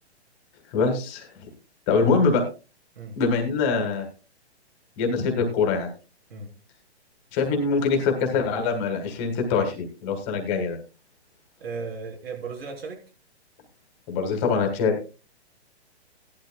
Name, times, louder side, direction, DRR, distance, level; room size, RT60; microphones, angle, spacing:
voice 1, 0.7-1.3 1.9-2.4 3.2-4.0 5.0-5.9 7.3-10.8 14.1-15.0, left 4 dB, 20° left, 1.7 m, -23 dB
voice 2, 11.6-13.0, right 4 dB, 60° right, 3.7 m, -35 dB
16.5 x 11.5 x 2.3 m
hypercardioid pair, 165°, 34 cm